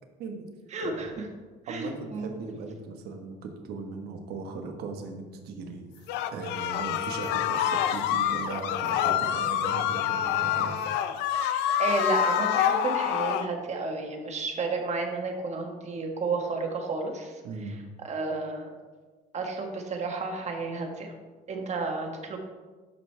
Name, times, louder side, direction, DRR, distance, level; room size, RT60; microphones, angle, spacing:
voice 1, 0.2-0.5 0.8-1.0 1.7-6.1 6.3-10.8 17.4-17.7, right 4 dB, 70° right, 4 dB, 1.2 m, -38 dB
voice 2, 0.7-1.3 1.7-2.4 11.4-17.4 17.7-17.8 18.0-18.7 19.3-21.1 21.5-22.4, right 3 dB, 40° right, 3 dB, 1.4 m, -32 dB
sound 1, 6.1-13.5, left 10 dB, 90° left, 0.5 m, -27 dB
11.5 x 4.9 x 3.3 m, 1.4 s
cardioid pair, 110°, 17 cm